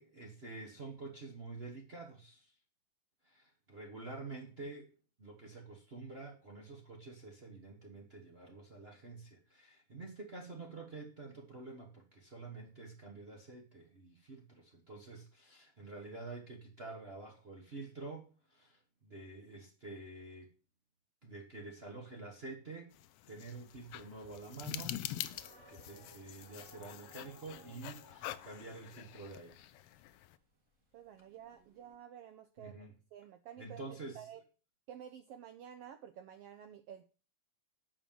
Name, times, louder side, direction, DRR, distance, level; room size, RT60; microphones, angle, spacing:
voice 1, 0.0-2.5 3.2-4.9 5.2-20.5 21.2-22.9 23.3-29.7 32.6-33.0 33.6-34.3, right 3 dB, 65° right, -1 dB, 0.6 m, -48 dB
sound 1, 22.9-30.4, left 13 dB, 85° left, 1.3 m, -46 dB
sound 2, 25.3-31.9, right 2 dB, 25° right, 2.5 m, -62 dB
voice 2, 30.9-32.9 33.1-33.8 34.1-34.4 34.9-37.0, right 9 dB, 80° right, 9 dB, 1.4 m, -51 dB
8.2 x 5.2 x 7.1 m, 0.37 s
omnidirectional pair, 3.3 m